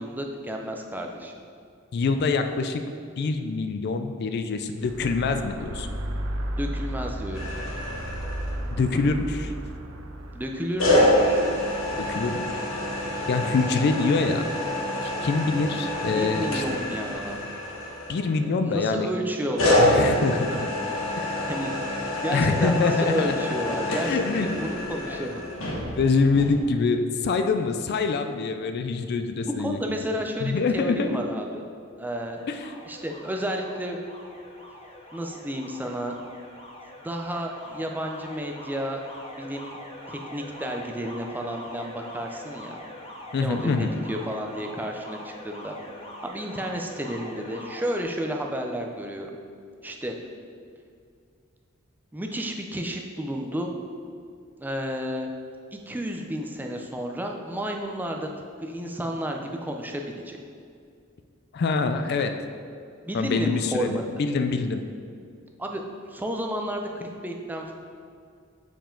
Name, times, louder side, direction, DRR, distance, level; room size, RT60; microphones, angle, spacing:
voice 1, 0.0-1.3 6.6-7.5 10.3-11.4 16.1-17.4 18.6-20.2 21.4-25.4 29.4-31.6 32.0-32.4 32.9-34.0 35.1-36.1 37.0-39.0 39.3-39.8 40.1-42.8 43.4-45.8 46.2-49.3 49.8-50.1 52.1-53.7 54.6-55.3 55.7-58.3 58.6-60.4 63.0-64.0 65.6-65.8 66.1-67.7, equal, 10° right, 2 dB, 0.4 m, -31 dB
voice 2, 1.9-2.8 3.2-5.9 8.7-9.5 12.0-12.6 13.3-14.5 15.0-16.6 18.1-19.1 19.8-20.7 21.2-21.4 22.3-23.4 23.9-25.4 25.9-29.8 30.4-31.2 32.5-32.7 43.3-43.9 61.5-62.4 63.1-64.8, left 4 dB, 55° left, 8 dB, 0.4 m, -25 dB
sound 1, 4.8-13.1, right 1 dB, 80° right, 0.6 m, -34 dB
sound 2, 7.3-8.9 10.8-18.6 19.6-26.6, left 1 dB, 90° left, 1.2 m, -27 dB
Alarm, 32.4-48.0, left 1 dB, 30° left, 0.8 m, -43 dB
7.1 x 4.7 x 3.8 m, 2.3 s
head